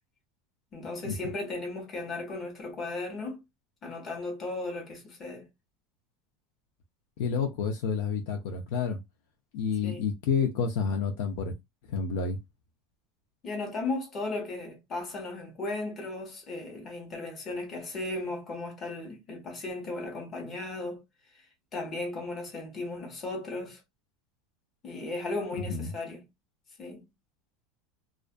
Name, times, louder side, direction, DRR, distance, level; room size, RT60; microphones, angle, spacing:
voice 1, 0.7-3.4 3.8-5.5 9.8-10.0 13.4-21.0 21.7-23.8 24.8-26.2 26.8-27.1, left 2 dB, 25° left, 1.0 m, -36 dB
voice 2, 7.2-9.0 9.5-11.5 11.9-12.4 25.6-25.9, left 6 dB, 70° left, 0.5 m, -29 dB
2.4 x 2.2 x 2.4 m
supercardioid pair, 145°, 0 cm